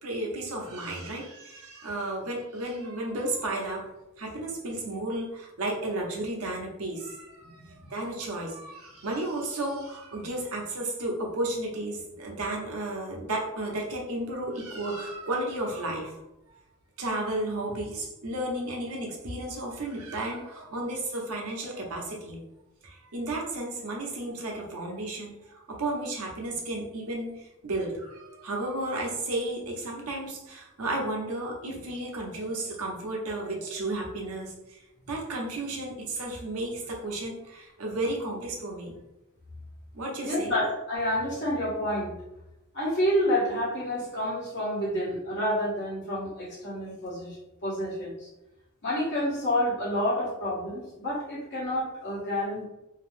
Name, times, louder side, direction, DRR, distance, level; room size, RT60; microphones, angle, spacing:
voice 1, 0.0-3.8 4.2-16.1 17.0-22.4 22.8-27.3 27.6-34.8 35.1-38.9 39.9-40.5, right 1 dB, 90° right, -1 dB, 0.7 m, -33 dB
voice 2, 40.2-42.1 42.7-48.3 48.8-52.7, equal, 55° left, -7 dB, 1.2 m, -29 dB
2.7 x 2.0 x 3.1 m, 0.94 s
head